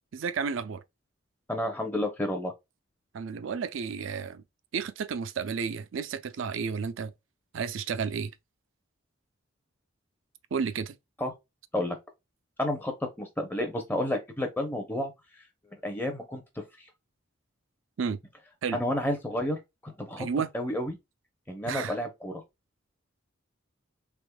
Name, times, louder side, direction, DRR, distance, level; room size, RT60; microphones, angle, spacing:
voice 1, 0.1-0.8 3.1-4.4 4.7-7.1 7.5-8.3 10.5-11.0 18.0-18.2 18.6-18.8 20.2-20.5 21.7-22.0, right 6 dB, 70° right, 0.4 m, -32 dB
voice 2, 1.5-2.5 11.2-11.3 11.7-12.0 12.6-15.1 15.8-16.4 16.8-16.9 18.7-20.3 20.5-21.0 21.5-22.4, left 1 dB, 10° left, 0.6 m, -31 dB
3.5 x 3.4 x 2.2 m
head